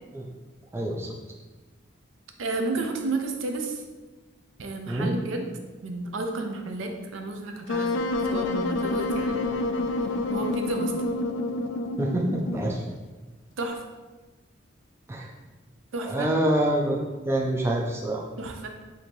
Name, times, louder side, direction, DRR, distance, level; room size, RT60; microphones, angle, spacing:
voice 1, 0.7-1.1 4.9-5.1 12.0-12.8 15.1-15.3 16.1-17.0 17.2-18.2, right 1 dB, 15° right, -1 dB, 0.3 m, -26 dB
voice 2, 2.4-3.8 4.6-5.5 5.8-7.9 8.2-9.4 10.3-10.9 13.6-13.8 15.9-16.3 18.4-18.7, right 2 dB, 75° right, 4 dB, 0.5 m, -31 dB
Wind instrument woodwind instrument, 7.7-12.8, left 2 dB, 70° left, 0.3 m, -28 dB
4.2 x 2.7 x 3.0 m, 1.3 s
head